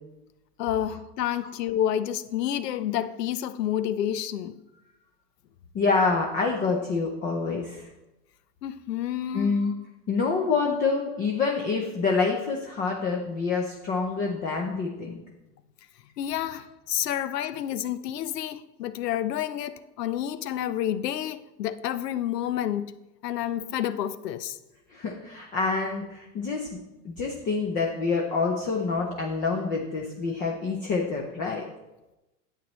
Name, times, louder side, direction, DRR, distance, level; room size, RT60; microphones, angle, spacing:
voice 1, 0.6-4.6 8.6-9.5 16.2-22.9 23.2-24.6, left 11 dB, 80° left, 0.8 m, -29 dB
voice 2, 5.7-7.9 9.3-9.8 10.1-15.2 24.9-26.8 27.0-31.6, left 4 dB, 20° left, 0.5 m, -27 dB
9.1 x 8.5 x 3.1 m
supercardioid pair, 145°, 48 cm